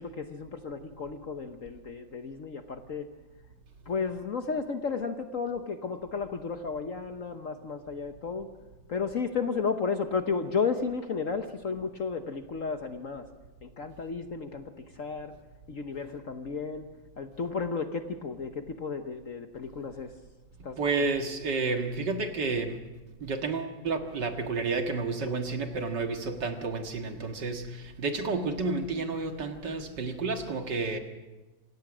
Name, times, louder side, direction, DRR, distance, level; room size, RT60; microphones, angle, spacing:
voice 1, 0.0-3.1 3.9-8.5 8.9-13.3 13.6-15.3 15.7-16.9 17.2-20.1 20.6-20.8, left 5 dB, 50° left, 7 dB, 1.2 m, -33 dB
voice 2, 20.8-22.8 23.2-31.0, right 3 dB, 60° right, 5 dB, 2.3 m, -31 dB
27.0 x 17.5 x 6.2 m, 1.1 s
omnidirectional pair, 2.2 m